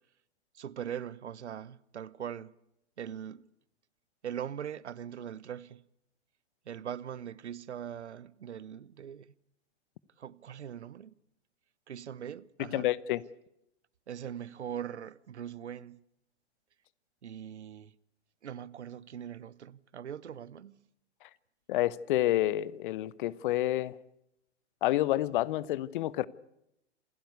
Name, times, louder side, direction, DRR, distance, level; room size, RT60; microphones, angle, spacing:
voice 1, 0.5-2.5 3.0-3.5 4.2-5.8 6.7-9.3 10.2-11.1 11.9-12.9 14.1-16.0 17.2-17.9 18.4-20.8, right 9 dB, 75° right, 1.0 m, -41 dB
voice 2, 12.6-13.2 21.7-23.9 24.8-26.3, left 15 dB, 45° left, 1.0 m, -29 dB
27.5 x 16.0 x 8.1 m
figure-of-eight pair, 110°, 34 cm